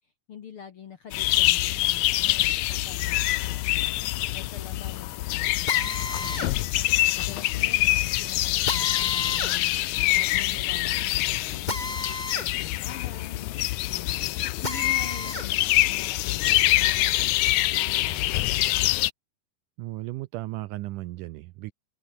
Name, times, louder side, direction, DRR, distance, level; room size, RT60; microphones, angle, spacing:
voice 1, 0.3-9.8 10.1-11.7 12.3-13.5 13.8-17.2 17.8-18.5, left 8 dB, 60° left, 1.5 m, -45 dB
sound 1, 1.1-19.1, left 17 dB, 80° left, 1.7 m, -25 dB
Drill, 5.7-15.5 15.9-17.6, left 3 dB, 20° left, 1.3 m, -35 dB
voice 2, 19.8-21.7, right 18 dB, 85° right, 1.9 m, -35 dB
open air
omnidirectional pair, 4.3 m